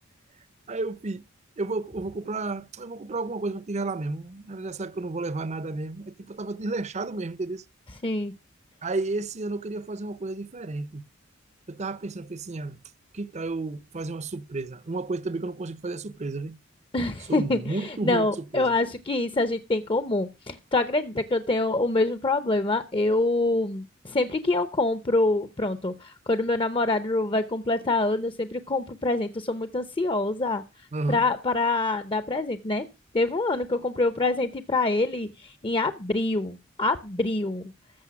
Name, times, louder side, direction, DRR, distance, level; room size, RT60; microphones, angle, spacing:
voice 1, 0.7-1.3 1.6-7.6 8.8-11.0 11.7-12.8 13.1-16.6 17.3-18.3 18.5-18.7 30.9-31.2, right 3 dB, 35° right, 0.6 m, -32 dB
voice 2, 8.0-8.3 16.9-30.6 31.1-32.8 33.1-37.6, left 2 dB, 25° left, 0.7 m, -25 dB
14.0 x 6.7 x 5.9 m
head